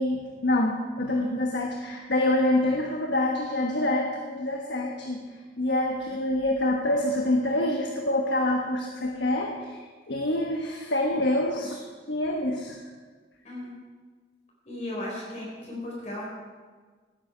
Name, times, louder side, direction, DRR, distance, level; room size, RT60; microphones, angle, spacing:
voice 1, 0.0-5.2 5.6-12.8, left 1 dB, 80° left, 1 dB, 1.3 m, -26 dB
voice 2, 14.7-16.2, left 1 dB, 40° left, -4 dB, 3.9 m, -35 dB
17.0 x 9.6 x 5.2 m, 1.5 s
head